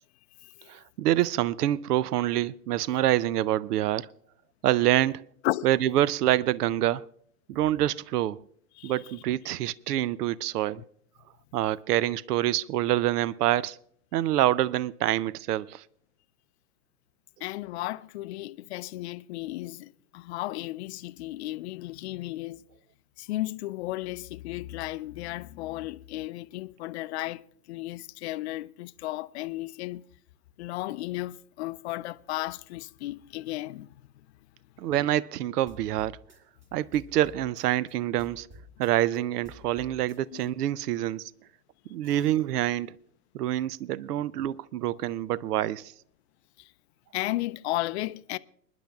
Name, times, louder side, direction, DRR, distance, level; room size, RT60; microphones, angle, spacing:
voice 1, 0.7-4.1 4.6-5.2 5.6-7.1 7.5-8.4 8.8-10.8 11.5-13.8 14.1-15.8 34.8-36.2 36.7-38.5 38.8-41.3 41.9-43.0 43.3-45.9, right 13 dB, 80° right, 0.6 m, -26 dB
voice 2, 17.4-22.6 23.2-30.0 30.6-33.9 40.3-40.4 42.0-42.2 46.6-46.7 47.1-48.4, left 17 dB, 45° left, 0.5 m, -34 dB
sound 1, 35.7-37.9 38.2-40.5, left 1 dB, 25° right, 2.4 m, -51 dB
30.0 x 10.5 x 2.3 m
hypercardioid pair, 125°, 47 cm